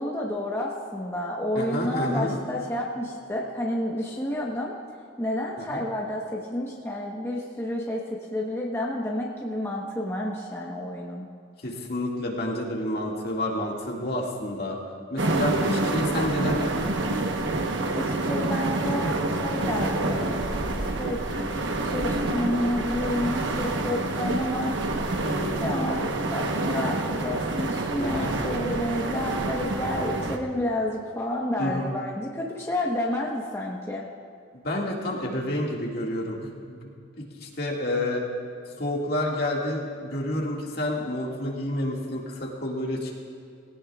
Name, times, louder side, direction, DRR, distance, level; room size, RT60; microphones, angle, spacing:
voice 1, 0.0-4.7 5.2-11.2 17.9-20.3 21.0-24.7 25.6-34.0, left 1 dB, 15° left, -3 dB, 1.1 m, -30 dB
voice 2, 1.6-2.4 5.7-5.8 11.6-14.8 15.1-17.0 25.2-26.0 28.0-28.6 31.6-31.9 34.6-36.9 37.2-38.3 38.8-43.1, left 1 dB, 55° left, -2 dB, 2.0 m, -29 dB
sound 1, 15.2-30.4, right 2 dB, 80° right, 1.1 m, -27 dB
19.0 x 17.5 x 2.4 m, 2.4 s
head